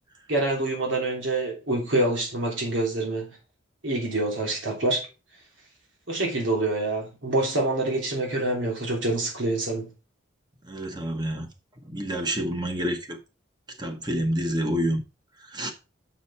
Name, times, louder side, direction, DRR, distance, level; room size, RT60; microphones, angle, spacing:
voice 1, 0.3-3.4 3.8-5.1 6.1-9.9, right 2 dB, 80° right, 3.1 m, -26 dB
voice 2, 10.6-11.5 11.9-13.2 13.8-15.0 15.5-15.7, equal, 20° right, 1.2 m, -28 dB
6.3 x 6.3 x 4.3 m
head